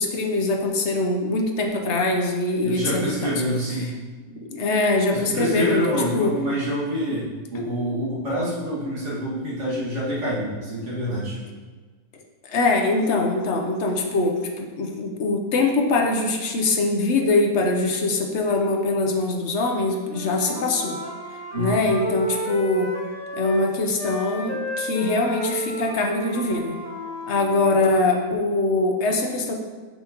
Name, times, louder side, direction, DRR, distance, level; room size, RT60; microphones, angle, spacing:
voice 1, 0.0-3.3 4.3-6.3 7.5-7.6 12.4-21.0 21.6-22.9 23.3-26.8 27.3-29.5, left 2 dB, 50° left, 2 dB, 0.9 m, -23 dB
voice 2, 2.6-3.9 5.1-11.4 21.5-21.8, equal, 45° right, -8 dB, 2.3 m, -26 dB
Wind instrument woodwind instrument, 20.0-23.7 24.0-27.8, equal, 15° left, 0.5 m, -33 dB
7.5 x 5.7 x 2.9 m, 1.4 s
omnidirectional pair, 1.8 m